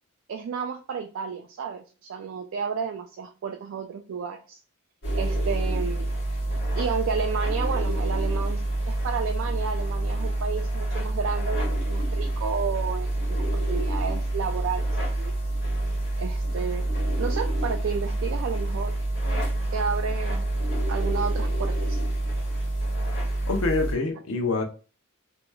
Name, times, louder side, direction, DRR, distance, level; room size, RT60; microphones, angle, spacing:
voice 1, 0.3-4.6 5.1-6.1 6.8-8.6 8.9-15.3 16.2-19.0 19.7-20.5 20.9-22.0, right 6 dB, 65° right, 0.3 m, -32 dB
sound 1, 5.0-23.9, right 1 dB, 55° left, 1.3 m, -27 dB
voice 2, 23.5-24.6, left 3 dB, 80° left, 0.6 m, -26 dB
3.1 x 2.9 x 2.2 m
head